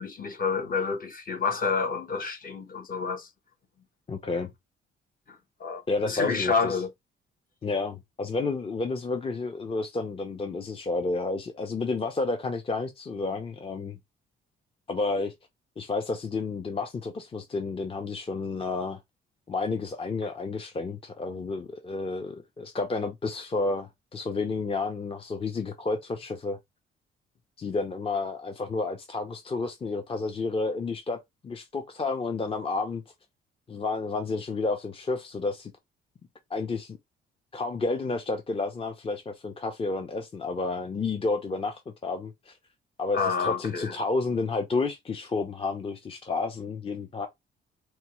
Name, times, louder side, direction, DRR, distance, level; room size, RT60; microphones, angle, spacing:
voice 1, 0.0-3.3 4.2-4.4 5.3-6.9 43.1-44.0, left 5 dB, 45° left, 1.1 m, -29 dB
voice 2, 4.1-4.5 5.9-6.8 7.6-14.0 14.9-15.3 15.8-19.0 19.5-26.6 27.6-33.0 33.7-35.7 36.5-37.0 37.5-42.6 43.0-47.3, left 3 dB, 30° left, 0.6 m, -31 dB
4.4 x 2.3 x 3.0 m
cardioid pair, 90°, 20 cm